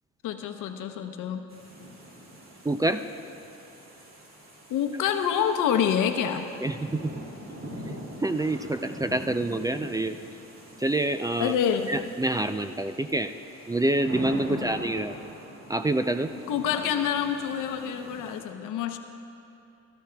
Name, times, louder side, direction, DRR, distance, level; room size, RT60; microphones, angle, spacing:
voice 1, 0.2-1.5 4.7-6.5 11.4-12.0 14.5-14.8 16.5-19.0, left 8 dB, 90° left, 7 dB, 0.8 m, -27 dB
sound 1, 1.5-18.4, equal, 45° right, 2.3 m, -44 dB
voice 2, 2.6-3.0 6.6-7.1 8.2-10.2 10.8-11.5 11.9-13.3 13.7-15.2 15.7-16.3, right 2 dB, 15° right, 9 dB, 0.3 m, -27 dB
17.0 x 13.5 x 2.3 m, 2.8 s
cardioid pair, 90°, 30 cm